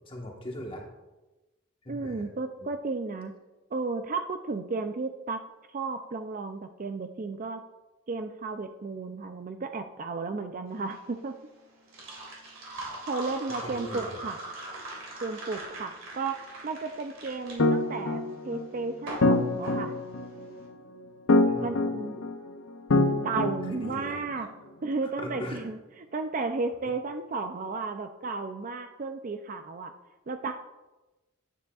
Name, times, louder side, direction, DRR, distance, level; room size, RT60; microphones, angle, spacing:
voice 1, 0.1-0.9 1.8-2.2 13.6-14.1 21.3-22.2 23.6-24.5 25.0-25.6, left 1 dB, 25° left, 0 dB, 1.3 m, -40 dB
voice 2, 1.9-3.3 3.7-5.4 5.7-7.6 8.1-11.4 13.1-14.4 15.2-19.9 21.6-22.2 23.2-24.5 24.8-29.9 30.3-30.6, right 3 dB, 40° right, 7 dB, 0.4 m, -33 dB
sound 1, 10.7-20.6, right 2 dB, 70° right, 2.6 m, -41 dB
sound 2, 17.6-24.3, left 2 dB, 65° left, 0.6 m, -26 dB
9.5 x 9.0 x 2.4 m, 1.1 s
head